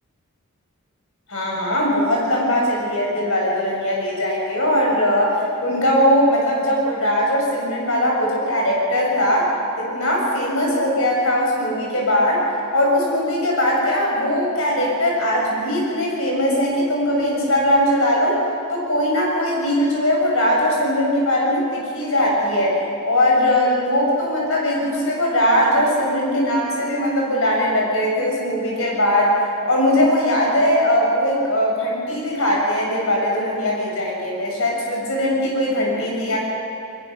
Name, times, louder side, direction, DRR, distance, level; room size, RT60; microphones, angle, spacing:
voice 1, 1.3-12.4 12.7-18.4 18.7-29.4 29.6-36.4, left 1 dB, 65° left, -2 dB, 6.6 m, -20 dB
22.5 x 21.5 x 6.3 m, 2.7 s
head